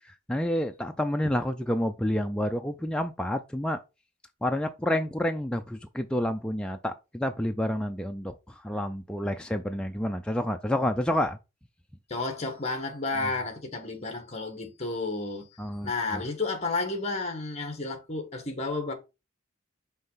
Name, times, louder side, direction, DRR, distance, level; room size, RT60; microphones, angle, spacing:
voice 1, 0.3-3.8 4.4-8.3 8.6-11.4 15.6-16.2, left 1 dB, 5° left, 0.3 m, -29 dB
voice 2, 12.1-15.5 15.8-18.9, left 3 dB, 30° left, 1.4 m, -31 dB
5.6 x 3.2 x 5.5 m
head